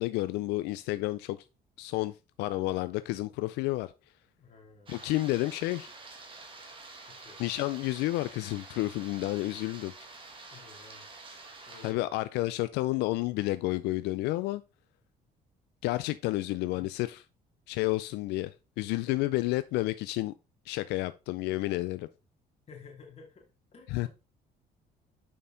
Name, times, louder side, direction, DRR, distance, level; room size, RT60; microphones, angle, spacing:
voice 1, 0.0-1.4 1.8-3.9 4.9-5.9 7.4-9.9 11.8-14.6 15.8-17.2 17.7-20.3 20.7-22.1 23.9-24.1, left 18 dB, 85° left, 0.4 m, -30 dB
voice 2, 4.4-5.1 7.1-7.5 10.5-11.1 11.7-12.0 16.7-16.9 22.7-23.5 23.7-24.1, left 5 dB, 40° left, 2.7 m, -52 dB
sound 1, 4.9-11.9, right 3 dB, 30° right, 1.8 m, -48 dB
6.7 x 5.5 x 3.8 m
cardioid pair, 110°, 17 cm